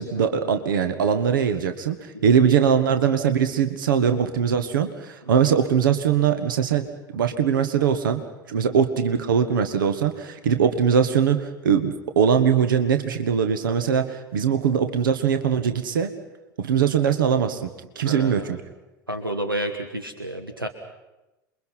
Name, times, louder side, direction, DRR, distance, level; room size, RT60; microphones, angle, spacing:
voice 1, 0.0-6.9 7.1-8.2 8.5-16.1 16.6-17.7 17.9-18.6, right 7 dB, 70° right, 9 dB, 1.5 m, -21 dB
voice 2, 18.0-18.6 19.1-20.7, right 1 dB, 90° right, 7 dB, 1.4 m, -31 dB
28.0 x 22.5 x 5.8 m, 1.0 s
figure-of-eight pair, 75°, 11 cm